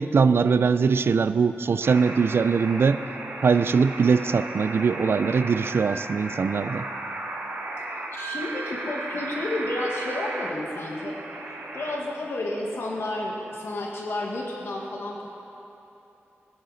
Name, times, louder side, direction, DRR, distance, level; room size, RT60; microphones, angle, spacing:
voice 1, 0.0-3.0 3.4-6.9, right 5 dB, 65° right, 12 dB, 0.3 m, -21 dB
sound 1, 1.8-12.0, right 2 dB, 90° right, 1.5 m, -35 dB
voice 2, 7.8-11.2 11.5-15.3, left 1 dB, 75° left, -2 dB, 1.5 m, -31 dB
20.0 x 9.7 x 3.9 m, 3.0 s
wide cardioid pair, 125°, 4 cm